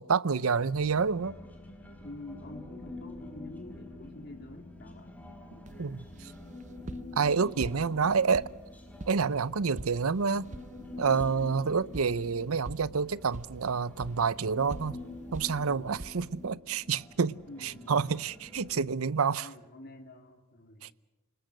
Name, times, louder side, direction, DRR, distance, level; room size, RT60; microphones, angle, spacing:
voice 1, 0.0-1.4 5.8-6.0 7.2-8.5 9.1-10.5 11.0-15.0 15.3-17.3 17.6-19.5 20.8-20.9, right 5 dB, 80° right, 0.7 m, -28 dB
Human voice, 0.6-18.7, left 2 dB, 5° left, 4.2 m, -47 dB
voice 2, 2.0-5.2 5.5-5.7 14.9-15.1 15.6-15.9 17.5-18.1 19.3-20.9, left 1 dB, 50° left, 3.3 m, -48 dB
sound 1, 5.7-16.4, right 1 dB, 35° right, 0.8 m, -47 dB
29.0 x 20.0 x 6.4 m
head